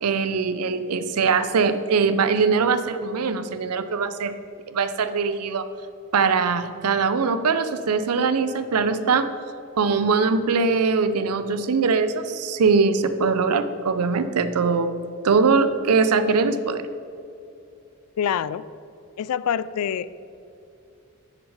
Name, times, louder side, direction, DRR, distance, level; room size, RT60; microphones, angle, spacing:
voice 1, 0.0-4.3 4.7-5.7 6.1-9.3 9.8-15.0 15.2-16.8, right 5 dB, 90° right, 11 dB, 0.6 m, -22 dB
voice 2, 18.2-18.7 19.2-20.1, left 8 dB, 85° left, 17 dB, 0.3 m, -25 dB
9.6 x 6.7 x 4.9 m, 2.6 s
head